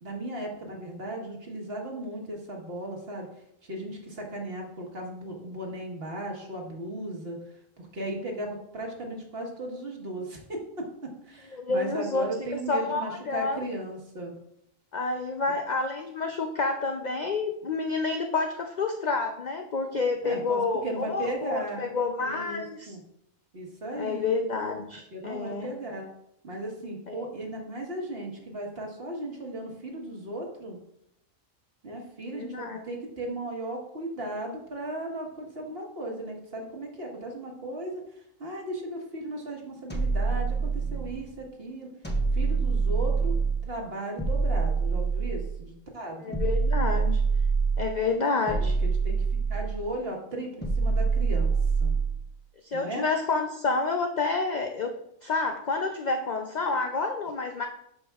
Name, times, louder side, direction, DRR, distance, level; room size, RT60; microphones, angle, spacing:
voice 1, 0.0-3.3 3.6-7.4 7.8-14.3 20.2-21.9 22.2-23.0 23.5-24.3 25.1-26.1 26.4-30.8 31.8-38.0 38.4-41.9 42.3-43.3 43.6-46.4 48.6-49.2 49.5-51.9 52.7-53.1, right 1 dB, 50° right, 0 dB, 1.5 m, -36 dB
voice 2, 11.5-13.6 14.9-23.0 24.0-25.7 27.1-27.2 32.3-32.8 46.2-47.2 47.8-48.8 52.6-54.9 55.2-57.7, left 3 dB, 65° left, 4 dB, 0.4 m, -29 dB
sound 1, 39.9-41.2 42.0-43.7 44.2-45.6 46.3-47.9 48.5-49.9 50.6-52.2, right 4 dB, 10° left, 0.9 m, -25 dB
11.5 x 5.2 x 2.3 m, 0.77 s
omnidirectional pair, 1.4 m